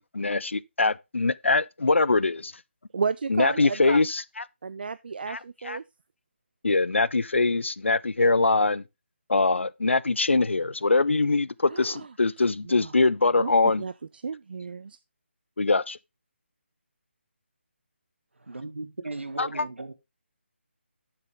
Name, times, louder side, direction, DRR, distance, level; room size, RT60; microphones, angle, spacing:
voice 1, 0.1-2.5 3.3-4.4 5.3-5.8 6.6-8.8 9.3-13.8 15.6-16.0 19.4-19.6, left 3 dB, 75° left, 0.5 m, -23 dB
voice 2, 2.9-4.0 4.6-5.8 11.7-12.1 12.7-12.9 13.4-15.0, right 5 dB, 50° right, 0.4 m, -33 dB
voice 3, 18.5-19.9, right 2 dB, 70° right, 1.4 m, -36 dB
9.6 x 6.8 x 3.4 m
figure-of-eight pair, 150°, 7 cm